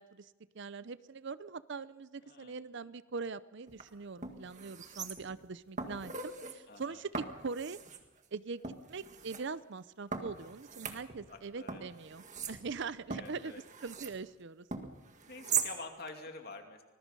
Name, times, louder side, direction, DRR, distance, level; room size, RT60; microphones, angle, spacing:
voice 1, 0.0-7.8 8.3-14.7, right 4 dB, 55° right, 16 dB, 0.6 m, -42 dB
voice 2, 2.2-2.6 6.7-7.0 11.3-11.9 13.1-13.6 15.3-16.8, left 3 dB, 45° left, 4 dB, 2.7 m, -48 dB
sound 1, 3.7-3.8 4.2-5.4 5.8-6.6 7.1-8.0 8.6-9.4 10.1-11.4 11.7-14.2 14.7-15.7 16.1-16.2, right 6 dB, 35° right, 1.8 m, -40 dB
25.5 x 20.5 x 5.4 m, 1.3 s
head